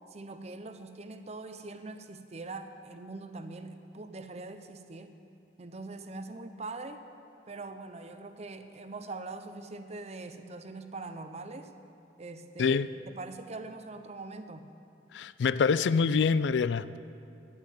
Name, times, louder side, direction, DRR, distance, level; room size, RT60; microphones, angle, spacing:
voice 1, 0.1-5.1 5.6-7.0 7.5-11.7 12.2-12.8 13.1-14.7, right 3 dB, 40° right, 0.7 m, -42 dB
voice 2, 15.1-17.0, left 5 dB, 80° left, 0.4 m, -25 dB
11.5 x 7.4 x 9.1 m
head